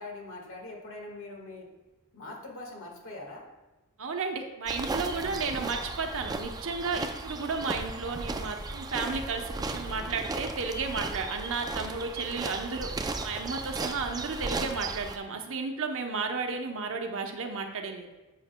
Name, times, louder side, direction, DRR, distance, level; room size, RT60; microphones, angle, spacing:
voice 1, 0.0-1.7 2.1-3.5 5.0-5.9 9.9-10.2 14.3-14.6, left 2 dB, 65° left, 0 dB, 1.7 m, -43 dB
voice 2, 4.0-18.1, right 4 dB, 65° right, 4 dB, 0.8 m, -33 dB
sound 1, 4.7-15.2, right 3 dB, 15° right, 0.4 m, -35 dB
9.9 x 7.2 x 2.2 m, 1.1 s
head